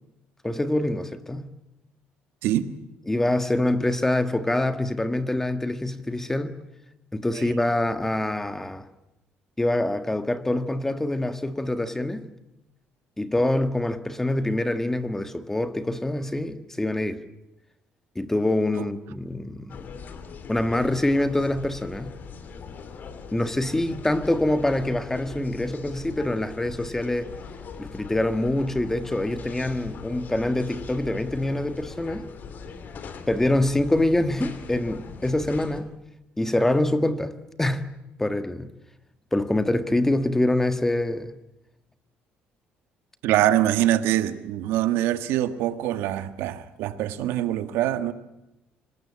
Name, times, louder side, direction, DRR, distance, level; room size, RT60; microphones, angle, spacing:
voice 1, 0.4-1.5 3.1-6.6 7.1-8.8 9.6-12.3 13.2-17.2 18.1-19.8 20.5-22.1 23.3-27.3 27.8-32.3 33.3-35.9 36.4-37.9 38.2-38.7 39.3-41.3, left 1 dB, 10° left, 1.7 m, -25 dB
sound 1, 19.7-35.8, left 5 dB, 50° left, 3.0 m, -41 dB
voice 2, 43.2-48.1, right 13 dB, 85° right, 1.6 m, -24 dB
25.5 x 19.5 x 8.7 m
cardioid pair, 110°, 4 cm